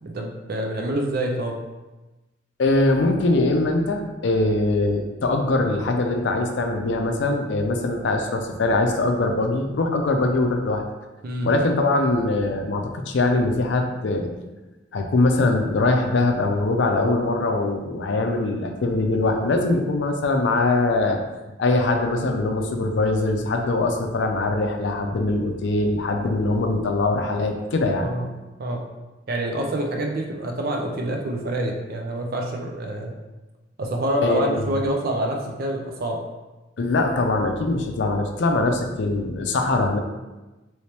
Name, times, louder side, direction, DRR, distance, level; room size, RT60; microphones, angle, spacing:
voice 1, 0.0-1.6 11.2-11.5 28.0-28.3 28.6-28.9 29.3-33.2 33.8-36.2, right 1 dB, 55° right, 1 dB, 0.4 m, -27 dB
voice 2, 2.6-10.8 11.4-14.3 14.9-21.2 21.6-28.1 34.2-34.8 36.8-40.0, left 2 dB, 70° left, 4 dB, 0.5 m, -22 dB
3.3 x 3.1 x 2.8 m, 1.1 s
head